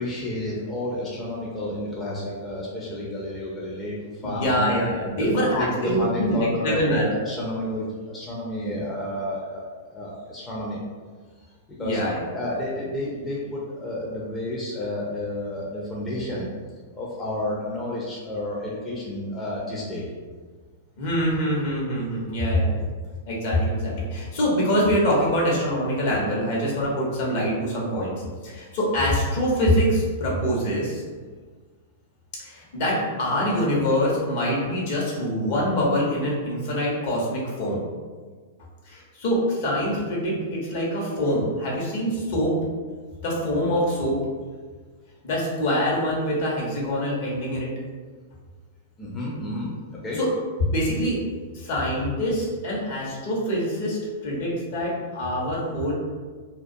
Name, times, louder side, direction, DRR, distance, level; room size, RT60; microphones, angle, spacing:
voice 1, 0.0-4.8 5.2-9.6 9.9-10.8 11.8-12.0 12.3-16.5 16.9-20.1 49.0-50.2, left 1 dB, 15° left, -6 dB, 0.5 m, -30 dB
voice 2, 4.2-7.1 8.6-8.9 11.8-12.2 21.0-22.8 23.3-31.0 32.4-37.8 38.9-42.5 43.2-44.2 45.2-47.7 50.1-50.3 50.7-51.2 51.5-55.9, equal, 55° left, -5 dB, 0.8 m, -24 dB
2.2 x 2.2 x 2.6 m, 1.5 s
hypercardioid pair, 105°, 0 cm